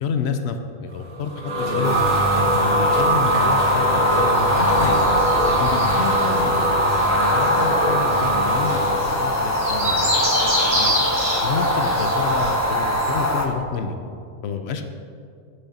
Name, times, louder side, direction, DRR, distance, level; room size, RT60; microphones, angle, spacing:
voice 1, 0.0-2.0 2.6-5.0 5.5-6.8 7.1-10.9 11.4-13.9 14.4-14.8, left 6 dB, 65° left, 7 dB, 0.8 m, -29 dB
sound 1, 1.0-9.0, right 1 dB, 85° right, 1.9 m, -24 dB
sound 2, 1.8-13.5, equal, 25° left, 0.3 m, -21 dB
sound 3, 3.7-13.3, equal, 50° right, 2.4 m, -29 dB
8.4 x 6.6 x 4.2 m, 2.3 s
omnidirectional pair, 1.3 m